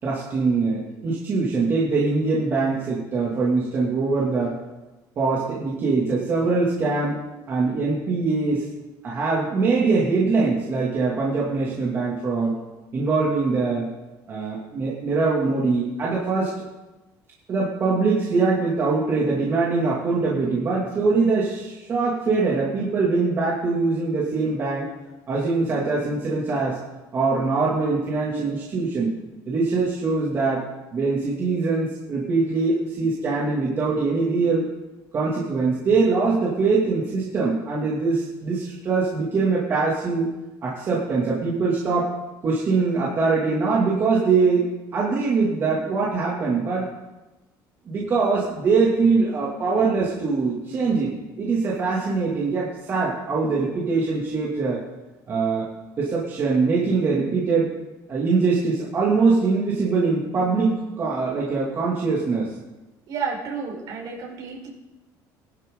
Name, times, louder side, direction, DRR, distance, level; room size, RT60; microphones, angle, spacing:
voice 1, 0.0-4.6 5.2-7.2 7.5-8.7 9.0-12.6 12.9-13.9 14.3-16.5 17.5-24.9 25.3-26.8 27.1-29.2 29.5-30.6 30.9-34.7 35.1-40.3 40.6-42.1 42.4-46.9 47.9-54.8 55.3-55.7 56.0-57.7 58.1-62.5, right 4 dB, 30° right, -5 dB, 2.5 m, -23 dB
voice 2, 63.1-64.7, right 5 dB, 55° right, -2 dB, 4.9 m, -31 dB
21.0 x 12.0 x 3.9 m, 1.1 s
cardioid pair, 170°, 8 cm